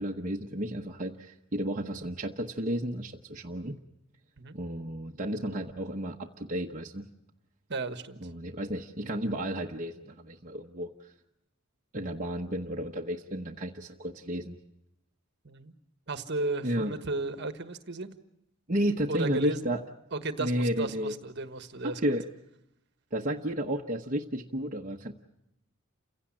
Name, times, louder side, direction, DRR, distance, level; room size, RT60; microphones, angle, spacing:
voice 1, 0.0-3.8 4.5-7.0 8.2-11.1 11.9-14.6 16.6-16.9 18.7-19.8 20.4-21.1 21.8-22.3 23.1-25.1, equal, 35° right, -1 dB, 1.0 m, -32 dB
voice 2, 7.7-8.2 15.4-15.7 16.1-18.1 19.1-19.6 20.1-22.2, right 2 dB, 55° right, 9 dB, 1.4 m, -34 dB
29.0 x 16.5 x 8.8 m, 0.85 s
head